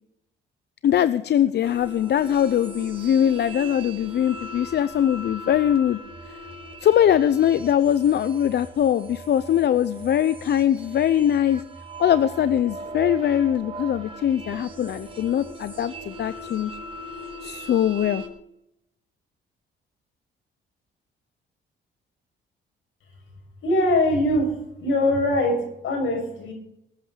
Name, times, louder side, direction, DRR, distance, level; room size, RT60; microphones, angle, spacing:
voice 1, 0.8-6.0 6.3-6.4 6.8-11.6 12.0-16.7 17.4-18.2, left 10 dB, 60° left, 14 dB, 0.7 m, -22 dB
sound 1, 1.6-18.3, right 1 dB, 30° right, 4.4 m, -39 dB
voice 2, 23.6-26.5, left 1 dB, 80° left, 2 dB, 6.9 m, -22 dB
20.0 x 8.8 x 6.8 m, 0.78 s
cardioid pair, 90°, 20 cm